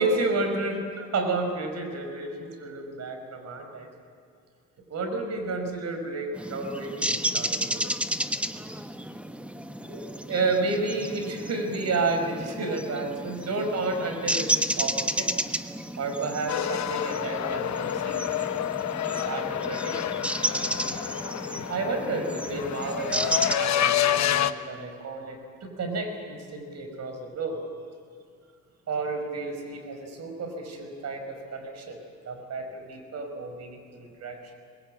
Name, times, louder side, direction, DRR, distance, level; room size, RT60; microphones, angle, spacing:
voice 1, 0.0-3.9 4.9-7.8 9.8-14.5 14.8-15.3 16.0-18.2 19.0-20.0 21.7-24.4 24.7-27.6 28.9-32.0 32.2-34.4, right 3 dB, 60° right, 5 dB, 5.0 m, -31 dB
sound 1, 6.4-23.5, right 1 dB, 5° right, 1.1 m, -32 dB
sound 2, 16.5-24.5, left 10 dB, 65° left, 1.0 m, -28 dB
23.5 x 21.0 x 8.7 m, 2.3 s
cardioid pair, 90°, 30 cm